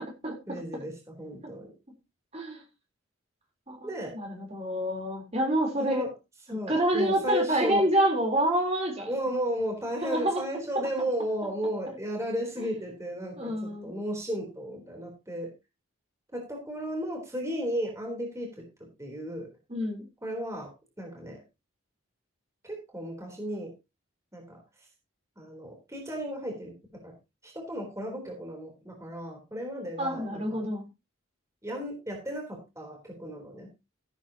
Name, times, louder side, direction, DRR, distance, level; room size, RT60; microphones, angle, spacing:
voice 1, 0.5-1.7 3.8-4.1 5.8-6.1 6.5-7.9 9.1-15.5 16.3-18.5 19.0-19.5 20.2-20.7 21.0-21.4 22.6-23.7 24.3-24.6 25.4-26.7 27.0-27.1 27.4-30.6 31.6-33.7, equal, 15° right, 1 dB, 3.8 m, -34 dB
voice 2, 3.7-6.0 6.7-9.1 10.0-10.4 13.4-13.9 19.7-20.0 30.0-30.8, right 1 dB, 30° right, 1 dB, 3.9 m, -27 dB
16.5 x 9.0 x 3.0 m, 0.26 s
head